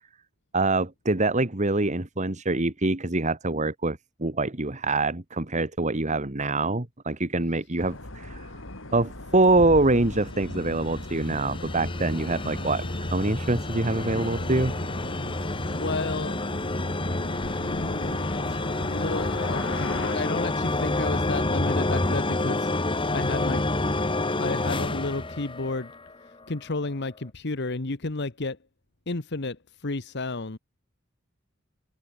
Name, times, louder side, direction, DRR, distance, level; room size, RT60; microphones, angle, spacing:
voice 1, 0.5-8.5 8.9-14.7, right 2 dB, 35° right, 2.0 m, -25 dB
sound 1, 7.8-20.1, left 1 dB, 75° left, 5.1 m, -38 dB
sound 2, 10.0-26.1, left 2 dB, 25° left, 1.7 m, -29 dB
voice 2, 15.7-16.4 17.7-18.6 18.9-22.7 23.1-23.6 24.3-25.9 26.5-28.6 29.1-30.6, left 3 dB, 60° left, 1.2 m, -32 dB
open air
head